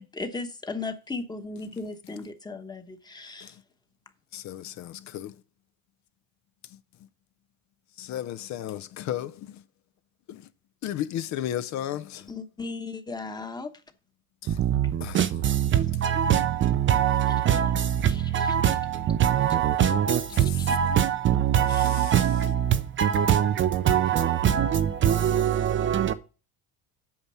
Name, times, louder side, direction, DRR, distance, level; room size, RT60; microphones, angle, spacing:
voice 1, 0.0-3.6 12.3-13.7 18.1-18.6 20.3-20.8 21.7-21.9, left 3 dB, 10° left, 1.0 m, -37 dB
voice 2, 4.3-5.3 8.0-9.4 10.3-10.4 10.8-12.3 14.4-14.6 15.0-15.2 21.7-22.1, left 11 dB, 50° left, 0.6 m, -34 dB
voice 3, 14.5-26.1, right 9 dB, 35° right, 0.5 m, -23 dB
8.8 x 5.9 x 5.5 m
cardioid pair, 140°, 35 cm